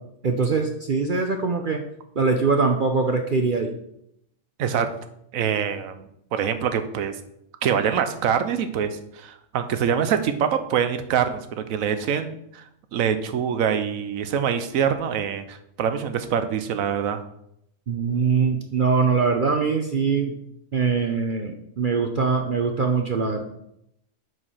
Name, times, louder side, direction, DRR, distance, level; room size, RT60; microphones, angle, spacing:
voice 1, 0.2-1.8 2.2-3.7 17.9-20.3 20.7-23.4, right 4 dB, 45° right, 4 dB, 0.8 m, -22 dB
voice 2, 5.3-7.1 7.6-12.6 12.9-17.2, right 8 dB, 85° right, 9 dB, 1.2 m, -25 dB
7.6 x 4.8 x 5.6 m, 0.75 s
omnidirectional pair, 1.4 m